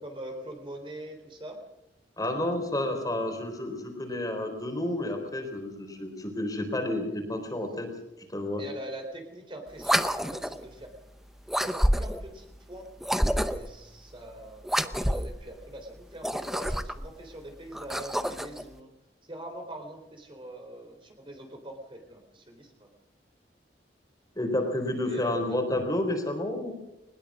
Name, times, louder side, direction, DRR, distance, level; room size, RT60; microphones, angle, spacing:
voice 1, 0.0-1.6 8.6-10.9 11.6-12.9 13.2-18.9 19.3-22.9 25.1-25.6, right 1 dB, 30° right, 3 dB, 3.5 m, -43 dB
voice 2, 2.2-7.9 8.2-8.6 24.4-26.7, left 1 dB, 20° left, 4 dB, 4.1 m, -30 dB
sound 1, 9.8-10.6 11.5-12.3 13.0-13.8 14.6-15.4 16.1-17.1 17.7-18.6, equal, ahead, 0.8 m, -28 dB
21.5 x 20.5 x 6.3 m, 0.93 s
head